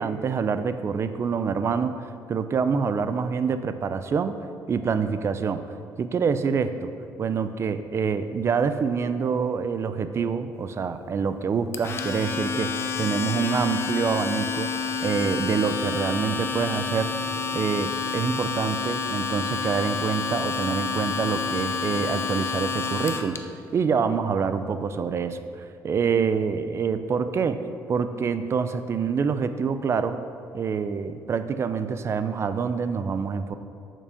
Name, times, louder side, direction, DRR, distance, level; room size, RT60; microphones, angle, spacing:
voice 1, 0.0-2.0 2.3-4.4 4.7-5.6 6.0-6.9 7.2-12.7 13.0-17.1 17.5-23.4 23.7-27.6 27.9-30.2 30.5-33.5, right 6 dB, 40° right, 10 dB, 0.5 m, -26 dB
Domestic sounds home sounds, 11.7-23.4, left 5 dB, 35° left, 0.7 m, -29 dB
sound 1, 16.9-21.9, left 1 dB, 15° left, 2.2 m, -50 dB
6.7 x 6.0 x 6.9 m, 2.6 s
cardioid pair, 105°, 7 cm